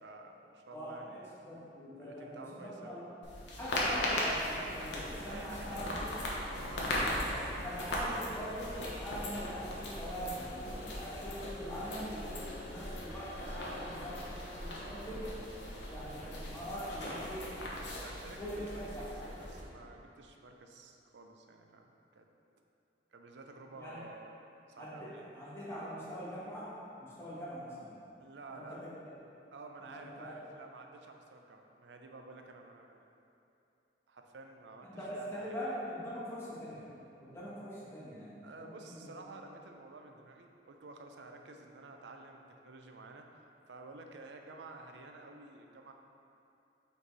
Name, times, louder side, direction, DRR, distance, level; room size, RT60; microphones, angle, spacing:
voice 1, 0.0-1.3 2.0-3.1 5.2-6.1 6.4-6.8 13.4-13.9 16.7-17.3 18.0-22.3 23.1-25.3 28.2-28.8 29.5-33.2 34.1-35.6 38.4-43.3 43.7-45.9, right 3 dB, 75° right, 3 dB, 0.5 m, -51 dB
voice 2, 0.7-3.1 3.6-6.0 7.1-15.3 15.9-17.4 18.4-19.0 23.7-24.0 24.8-26.7 27.0-27.9 28.5-28.9 29.8-30.4 34.8-36.9 37.2-39.1, equal, 15° left, -9 dB, 1.5 m, -43 dB
sound 1, 3.2-19.6, left 1 dB, 80° left, 1.0 m, -38 dB
5.3 x 4.5 x 4.1 m, 2.7 s
head